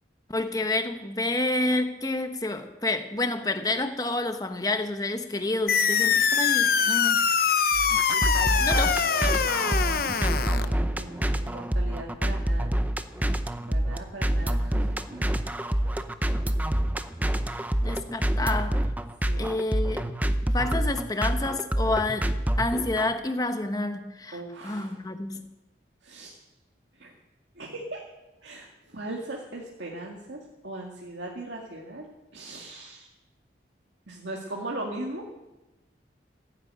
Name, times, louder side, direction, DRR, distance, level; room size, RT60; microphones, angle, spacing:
voice 1, 0.3-7.2 8.1-9.0 17.8-18.8 19.4-20.1 20.5-22.3 22.6-25.5, left 2 dB, 20° left, 7 dB, 1.2 m, -29 dB
sound 1, 5.7-10.7, left 6 dB, 55° left, 0.8 m, -23 dB
sound 2, 7.7-23.1, right 1 dB, 10° right, 0.7 m, -27 dB
voice 2, 9.5-12.7 13.7-15.3 19.3-19.5 24.3-25.0 26.0-26.4 26.9-27.1 27.6-28.0 28.4-28.7 28.9-32.1 32.3-33.1 34.1-35.2, right 2 dB, 80° right, -1 dB, 2.1 m, -39 dB
15.5 x 10.5 x 8.8 m, 1.1 s
head